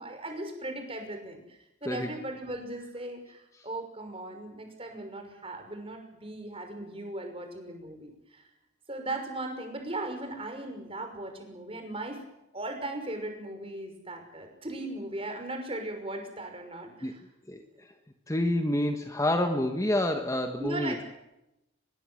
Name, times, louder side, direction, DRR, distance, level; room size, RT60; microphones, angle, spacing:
voice 1, 0.0-8.4 8.9-12.2 12.5-17.2 20.6-21.0, right 2 dB, 30° right, 5 dB, 5.9 m, -38 dB
voice 2, 17.5-17.9 18.3-21.0, left 1 dB, 15° left, 5 dB, 1.5 m, -28 dB
23.5 x 22.0 x 7.8 m, 0.89 s
head